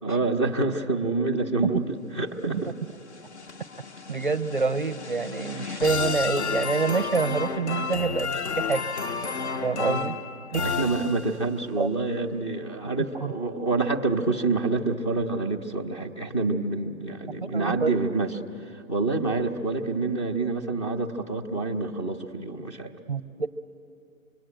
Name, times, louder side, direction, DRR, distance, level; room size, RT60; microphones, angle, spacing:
voice 1, 0.0-2.7 5.5-5.6 9.8-10.0 10.6-22.9, right 3 dB, 20° left, 7 dB, 0.7 m, -27 dB
sound 1, 2.6-11.6, left 5 dB, 50° left, 1.1 m, -32 dB
voice 2, 4.1-8.8 9.6-10.1 10.5-10.8 11.8-11.9 13.2-13.3 17.4-17.9 23.1-23.5, right 4 dB, 35° right, 10 dB, 0.5 m, -27 dB
25.0 x 23.0 x 8.9 m, 2.6 s
hypercardioid pair, 180°, 42 cm